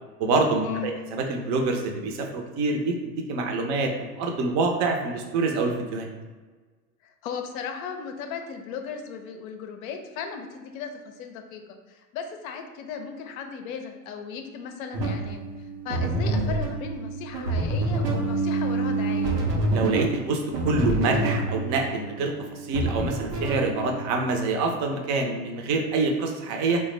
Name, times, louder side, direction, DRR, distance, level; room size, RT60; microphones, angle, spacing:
voice 1, 0.2-6.1 19.7-26.8, right 3 dB, 35° right, 3 dB, 0.5 m, -26 dB
voice 2, 7.0-19.3, left 6 dB, 60° left, 5 dB, 0.6 m, -36 dB
sound 1, 14.9-24.5, right 2 dB, 90° right, 0.7 m, -27 dB
3.3 x 2.1 x 3.2 m, 1.4 s
hypercardioid pair, 90°, 48 cm